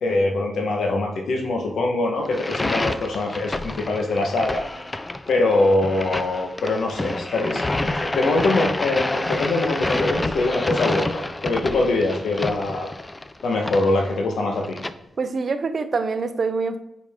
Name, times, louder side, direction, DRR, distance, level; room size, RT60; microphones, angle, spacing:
voice 1, 0.0-4.6 5.3-12.9 13.4-14.8, left 2 dB, 75° left, 1 dB, 1.2 m, -23 dB
sound 1, 2.3-14.9, left 2 dB, 15° left, 0.3 m, -28 dB
voice 2, 15.2-16.8, right 4 dB, 45° right, 10 dB, 0.6 m, -25 dB
8.7 x 5.1 x 3.6 m, 0.90 s
wide cardioid pair, 140°, 0 cm